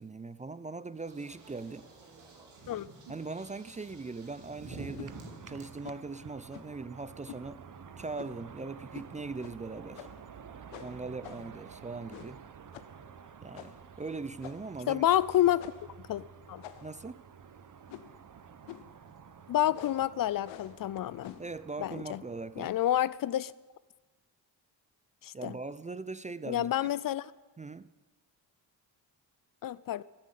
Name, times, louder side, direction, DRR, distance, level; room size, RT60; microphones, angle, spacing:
voice 1, 0.0-1.9 3.1-5.2 5.5-7.6 8.0-10.1 10.8-12.4 13.4-15.0 16.8-17.2 21.4-22.7 25.3-26.9 27.6-27.9, right 3 dB, 15° right, 0.4 m, -40 dB
sound 1, 1.0-5.6, right 3 dB, 90° right, 3.0 m, -48 dB
sound 2, 4.9-5.1 5.8-6.1 6.5-6.8 7.3-7.5 8.2-8.5 8.9-9.1 9.4-9.6 9.9-10.3 10.7-11.6 12.1-12.4 12.7-13.0 13.5-13.9 14.4-14.8 15.6-15.9 16.6-17.1 17.9-18.2 18.7-19.0 19.7-20.1 20.4-20.8 21.2-21.5, left 13 dB, 90° left, 0.8 m, -48 dB
sound 3, 5.0-23.0, right 7 dB, 45° right, 0.9 m, -51 dB
voice 2, 14.9-15.7 16.1-16.6 19.5-21.3 21.8-22.2 22.6-23.5 25.2-25.5 26.5-27.2 29.6-30.0, left 12 dB, 50° left, 0.4 m, -29 dB
14.0 x 7.4 x 9.2 m
cardioid pair, 65°, 44 cm